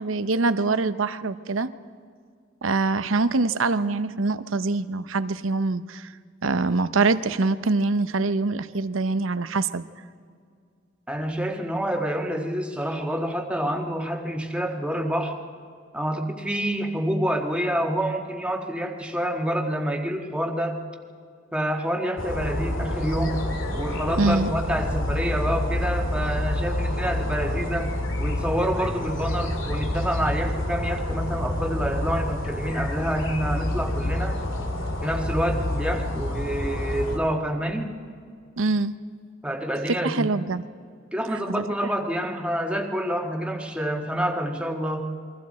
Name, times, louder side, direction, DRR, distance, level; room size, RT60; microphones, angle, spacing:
voice 1, 0.0-1.7 2.6-6.1 6.4-9.8 24.2-24.5 38.6-38.9 39.9-40.6 41.5-41.6, right 3 dB, 90° right, 13 dB, 0.8 m, -24 dB
voice 2, 11.1-15.4 15.9-20.8 21.5-27.9 28.2-34.3 35.0-38.0 39.4-40.3 41.1-45.1, equal, 5° right, 2 dB, 1.6 m, -27 dB
sound 1, 22.2-37.2, left 1 dB, 80° left, 2.5 m, -28 dB
28.5 x 23.0 x 4.3 m, 2.2 s
head